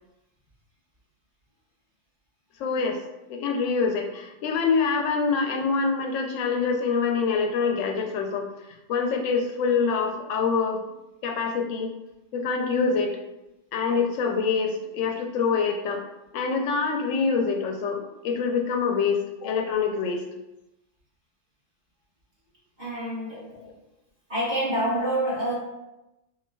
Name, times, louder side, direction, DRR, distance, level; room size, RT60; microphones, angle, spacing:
voice 1, 2.6-3.0 3.3-8.5 8.9-10.8 11.2-11.9 12.3-13.2 13.7-16.0 16.3-20.2 23.5-23.7 25.0-25.1, left 5 dB, 85° left, 3 dB, 0.9 m, -25 dB
voice 2, 22.8-23.5 24.3-25.5, right 1 dB, 40° right, -8 dB, 1.5 m, -27 dB
5.4 x 2.6 x 2.2 m, 0.94 s
omnidirectional pair, 1.3 m